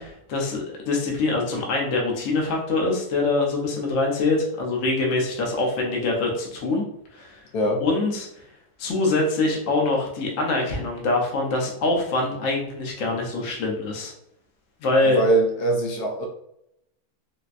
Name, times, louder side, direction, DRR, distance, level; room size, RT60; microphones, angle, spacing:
voice 1, 0.0-6.8 7.1-7.4 7.8-8.3 8.8-14.1 14.8-15.2, left 2 dB, 60° left, -1 dB, 1.0 m, -24 dB
voice 2, 15.1-16.3, right 2 dB, 80° left, 0 dB, 1.2 m, -22 dB
4.1 x 2.1 x 2.5 m, 0.75 s
omnidirectional pair, 1.7 m